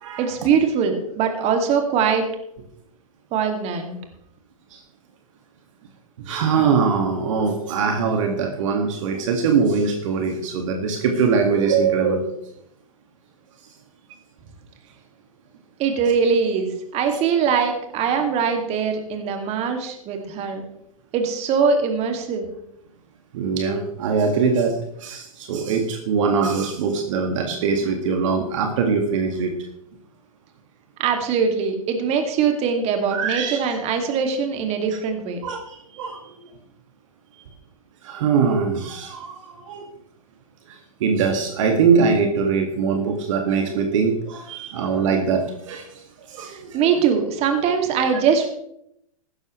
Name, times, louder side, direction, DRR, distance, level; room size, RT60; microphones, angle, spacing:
voice 1, 0.2-2.3 3.3-4.0 15.8-20.6 21.1-22.5 31.0-35.4 46.7-48.5, right 6 dB, 35° right, 5 dB, 2.4 m, -22 dB
voice 2, 6.2-12.3 23.3-29.5 33.1-33.6 35.4-36.4 38.0-39.8 40.7-45.9 46.3-46.9, right 5 dB, 60° right, 4 dB, 2.0 m, -22 dB
15.5 x 13.0 x 3.2 m, 0.76 s
hypercardioid pair, 110°, 19 cm